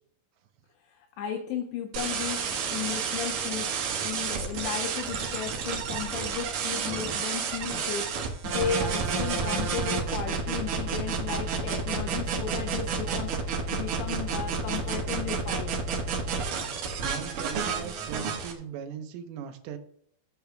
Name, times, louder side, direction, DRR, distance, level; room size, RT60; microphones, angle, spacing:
voice 1, 0.8-15.8, left 7 dB, 85° left, 2.4 m, -35 dB
sound 1, 1.9-18.5, right 5 dB, 65° right, 2.3 m, -30 dB
voice 2, 17.0-19.8, right 7 dB, 85° right, 3.6 m, -39 dB
15.5 x 8.4 x 2.3 m
omnidirectional pair, 5.7 m